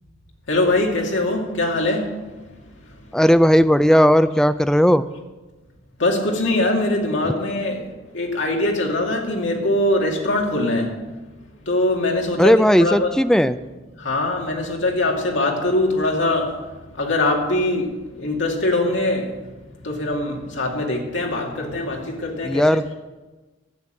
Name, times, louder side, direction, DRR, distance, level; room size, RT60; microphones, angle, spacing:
voice 1, 0.5-2.5 6.0-11.0 11.6-13.1 14.0-19.5 19.8-22.8, left 2 dB, 65° left, 0 dB, 2.5 m, -22 dB
voice 2, 3.1-5.0 12.4-13.6 22.4-22.8, equal, 5° left, 12 dB, 0.4 m, -16 dB
12.0 x 8.6 x 7.6 m, 1.2 s
head